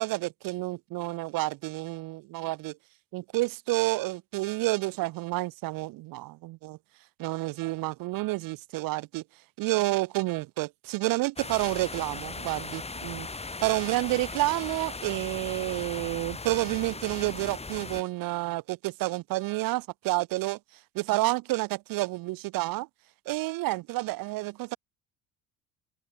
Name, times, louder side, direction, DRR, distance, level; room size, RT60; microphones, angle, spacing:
voice 1, 0.0-2.8 3.1-6.8 7.2-9.2 9.6-13.3 13.6-20.6 20.9-22.9 23.2-24.8, right 20 dB, 65° right, 1.5 m, -29 dB
sound 1, 11.4-18.0, left 3 dB, 15° left, 2.4 m, -38 dB
hypercardioid pair, 65°, 37 cm